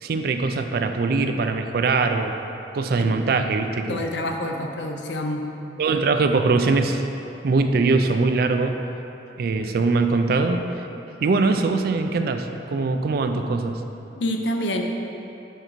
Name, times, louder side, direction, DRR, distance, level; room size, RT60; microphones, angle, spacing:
voice 1, 0.0-2.4 2.7-4.0 5.8-7.0 7.4-8.8 9.4-10.8 11.2-13.8, right 3 dB, 55° right, 7 dB, 0.4 m, -22 dB
voice 2, 3.9-5.4 14.2-14.8, left 1 dB, 80° left, 3 dB, 0.6 m, -27 dB
6.5 x 3.9 x 4.5 m, 2.9 s
head